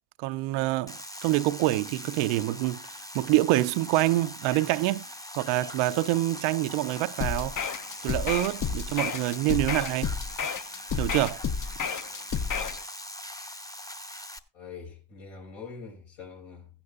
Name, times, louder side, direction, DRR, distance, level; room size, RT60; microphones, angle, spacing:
voice 1, 0.2-2.8 3.1-5.1 5.4-7.6 8.0-10.1 11.0-11.4, right 17 dB, 85° right, 0.6 m, -26 dB
sound 1, 0.9-14.4, left 1 dB, 10° left, 0.8 m, -41 dB
sound 2, 7.2-12.8, left 6 dB, 40° left, 0.8 m, -31 dB
voice 2, 14.5-16.7, left 5 dB, 75° left, 4.8 m, -43 dB
15.0 x 9.8 x 2.4 m
supercardioid pair, 65°, 46 cm